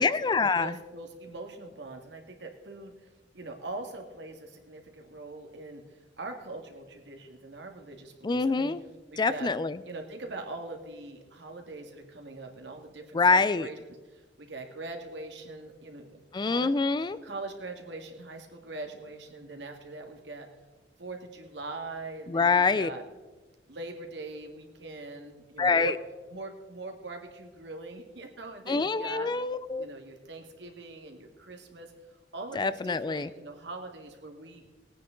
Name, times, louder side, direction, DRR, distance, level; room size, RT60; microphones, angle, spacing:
voice 1, 0.0-0.8 8.2-8.8 9.2-9.8 13.1-13.7 16.3-17.2 22.3-22.9 25.6-25.9 28.7-29.9 32.5-33.3, left 4 dB, 25° left, 15 dB, 0.4 m, -25 dB
voice 2, 0.6-3.1 3.3-8.7 9.1-9.5 9.8-16.7 17.2-20.5 21.0-23.0 23.7-26.0 26.3-29.3 29.8-34.6, right 3 dB, 75° right, 3 dB, 1.9 m, -42 dB
19.0 x 9.3 x 3.8 m, 1.2 s
head